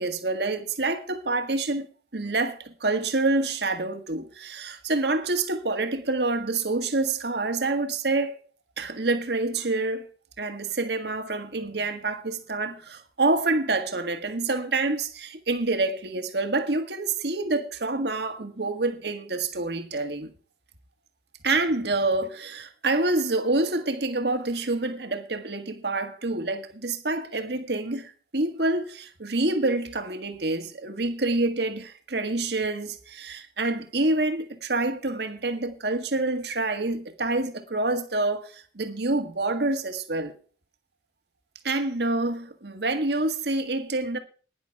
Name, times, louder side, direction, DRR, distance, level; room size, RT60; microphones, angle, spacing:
voice 1, 0.0-1.9 2.1-8.4 8.8-10.1 10.4-20.3 21.4-40.3 41.6-44.2, right 2 dB, 65° right, 1.6 m, -27 dB
11.5 x 10.5 x 4.6 m
head